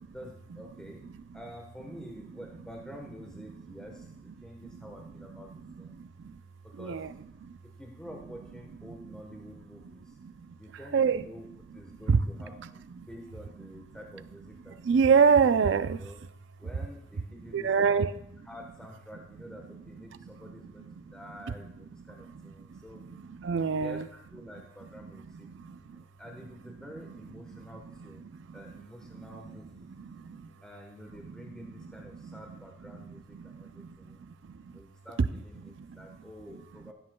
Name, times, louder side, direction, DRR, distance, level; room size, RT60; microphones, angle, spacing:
voice 1, 0.1-1.0 1.3-5.9 6.6-7.1 7.6-10.1 10.6-11.5 11.7-12.8 13.1-14.8 15.1-15.2 15.9-16.2 16.6-18.0 18.4-23.1 23.8-25.5 25.8-29.9 30.6-34.3 34.7-36.9, equal, 5° left, 0 dB, 1.1 m, -48 dB
voice 2, 5.3-6.4 6.7-7.1 7.4-7.5 9.0-9.1 10.2-10.6 10.9-11.2 12.1-12.2 13.0-13.1 14.8-16.1 17.5-18.1 20.2-20.3 21.1-21.2 21.5-21.6 22.7-24.1 25.0-25.1 25.4-26.0 27.5-27.7 28.3-28.6 29.1-29.6 29.9-30.5 31.2-31.3 31.6-32.4 33.3-34.8 35.2-35.3 35.6-36.0, right 6 dB, 80° right, 13 dB, 0.4 m, -28 dB
16.5 x 7.5 x 2.2 m, 0.74 s
head